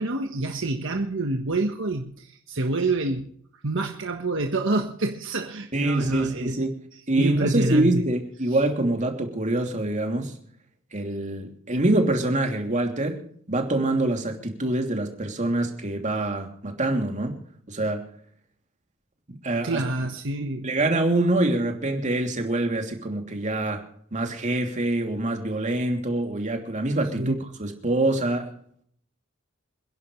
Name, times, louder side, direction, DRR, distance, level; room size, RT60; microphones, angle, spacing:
voice 1, 0.0-3.3 3.6-6.6 7.2-8.1 8.5-8.6 19.6-20.7 27.2-27.4, right 2 dB, 65° right, 4 dB, 1.4 m, -27 dB
voice 2, 5.7-6.7 7.1-10.3 10.9-13.2 13.5-17.3 17.7-18.1 19.3-19.8 20.6-23.8 24.1-28.5, right 2 dB, 35° right, 3 dB, 2.9 m, -25 dB
27.5 x 11.0 x 3.2 m, 0.63 s
head